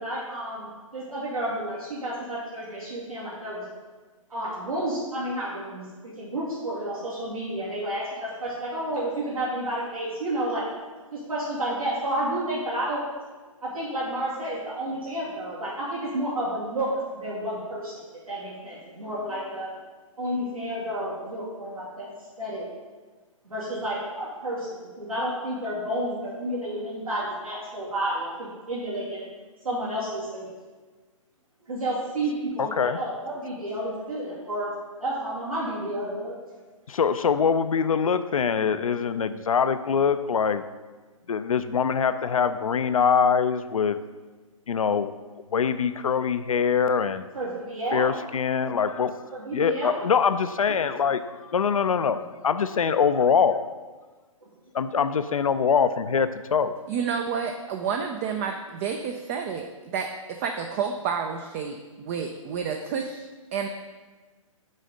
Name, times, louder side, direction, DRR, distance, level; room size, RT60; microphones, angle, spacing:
voice 1, 0.0-3.7 4.3-10.6 11.1-13.0 13.6-19.7 20.2-22.7 23.4-29.2 29.6-30.5 31.6-34.7 35.0-36.4 47.3-48.1 49.3-49.9, right 1 dB, 85° right, -8 dB, 2.4 m, -31 dB
voice 2, 32.6-33.0 36.9-40.6 41.3-44.0 44.7-45.1 45.5-47.3 47.9-49.2 49.5-53.7 54.7-56.7, left 6 dB, 75° left, 12 dB, 0.5 m, -23 dB
voice 3, 56.9-61.8 62.0-63.3 63.5-63.7, right 6 dB, 25° right, 5 dB, 0.4 m, -30 dB
6.4 x 4.1 x 6.5 m, 1.3 s
figure-of-eight pair, 130°, 18 cm